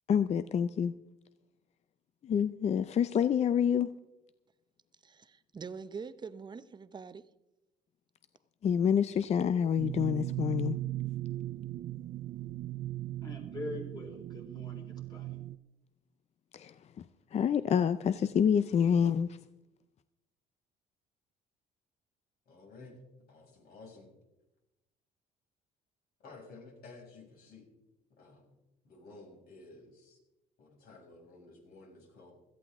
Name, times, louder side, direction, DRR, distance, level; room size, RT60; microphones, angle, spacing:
voice 1, 0.1-0.9 2.2-3.9 8.6-10.8 16.5-19.4, left 8 dB, 40° left, 0.5 m, -28 dB
voice 2, 5.0-7.2, right 5 dB, 25° right, 0.7 m, -44 dB
sound 1, 9.8-15.6, right 15 dB, 55° right, 0.4 m, -38 dB
voice 3, 13.2-15.4, left 2 dB, 25° left, 4.0 m, -43 dB
voice 4, 22.4-23.0 23.3-24.1 26.2-27.7 28.2-28.5 28.8-30.2 30.6-32.3, left 3 dB, 60° left, 6.3 m, -53 dB
17.0 x 14.0 x 3.6 m
cardioid pair, 110°, 17 cm